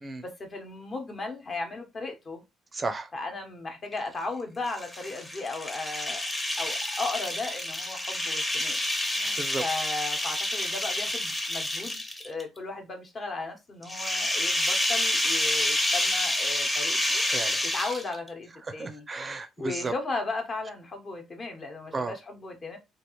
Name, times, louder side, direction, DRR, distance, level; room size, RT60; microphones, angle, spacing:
voice 1, 0.2-2.4 3.1-6.2 6.6-8.8 9.1-17.2 17.6-19.1 19.6-22.8, left 3 dB, 40° left, 1.0 m, -36 dB
voice 2, 2.7-3.1 9.4-9.6 17.2-17.6 18.6-19.9 21.9-22.2, right 3 dB, 30° right, 0.5 m, -33 dB
sound 1, 4.7-12.4 13.8-18.3, left 1 dB, 15° left, 0.8 m, -28 dB
3.1 x 2.4 x 3.0 m
supercardioid pair, 80°, 0 cm